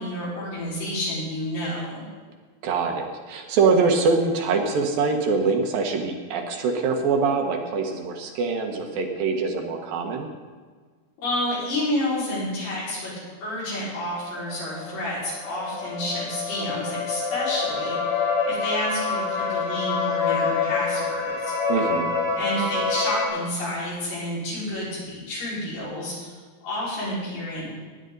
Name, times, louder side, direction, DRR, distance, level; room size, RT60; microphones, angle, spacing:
voice 1, 0.0-2.1 11.2-13.1 13.4-21.5 22.4-26.4 26.6-27.7, left 1 dB, 80° left, -8 dB, 7.0 m, -30 dB
voice 2, 2.6-10.3 21.7-22.1, right 4 dB, 70° right, 3 dB, 2.7 m, -24 dB
sound 1, 14.0-23.3, left 4 dB, 60° left, 3.1 m, -27 dB
19.0 x 9.9 x 3.9 m, 1.5 s
omnidirectional pair, 4.6 m